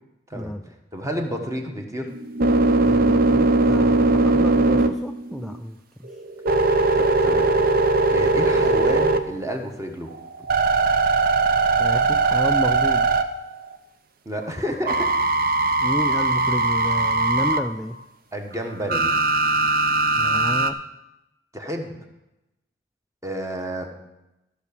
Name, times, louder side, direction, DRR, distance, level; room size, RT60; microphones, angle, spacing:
voice 1, 0.9-2.1 6.9-7.5 8.1-10.1 12.0-12.3 14.2-15.1 18.3-19.1 21.5-22.0 23.2-23.9, equal, 15° right, 3 dB, 1.1 m, -30 dB
sound 1, 2.1-5.6 6.1-9.6 10.1-13.8 14.9-17.6 18.9-20.7, right 2 dB, 50° right, 0.6 m, -20 dB
voice 2, 2.8-6.1 11.8-13.1 15.8-18.0 20.2-20.8, equal, ahead, 4 dB, 0.3 m, -30 dB
13.5 x 5.8 x 6.8 m, 0.95 s
head